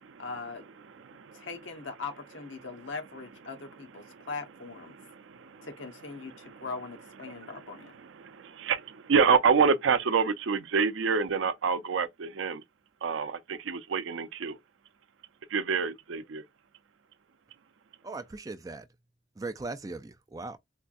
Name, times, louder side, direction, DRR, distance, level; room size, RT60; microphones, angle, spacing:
voice 1, 0.2-0.6 1.3-5.0 5.6-7.9, left 4 dB, 75° left, 0.9 m, -40 dB
voice 2, 5.2-5.7 8.2-12.6 13.0-14.6 15.5-16.4, right 5 dB, 75° right, 0.5 m, -27 dB
voice 3, 18.0-18.8 19.4-20.6, right 3 dB, 20° right, 0.3 m, -38 dB
4.3 x 2.3 x 2.5 m
head